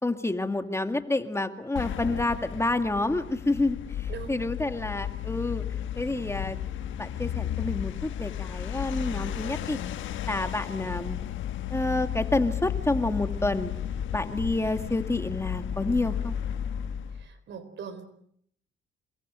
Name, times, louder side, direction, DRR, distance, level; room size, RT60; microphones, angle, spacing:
voice 1, 0.0-5.7 6.0-6.6 7.0-9.8 10.2-11.2 11.7-13.7 14.1-16.3, left 2 dB, 15° left, 7 dB, 2.1 m, -29 dB
sound 1, 1.8-17.3, left 10 dB, 75° left, 1.4 m, -33 dB
voice 2, 4.1-4.4 17.1-18.1, right 6 dB, 65° right, 13 dB, 4.3 m, -41 dB
28.0 x 23.0 x 7.7 m, 0.70 s
cardioid pair, 90°, 20 cm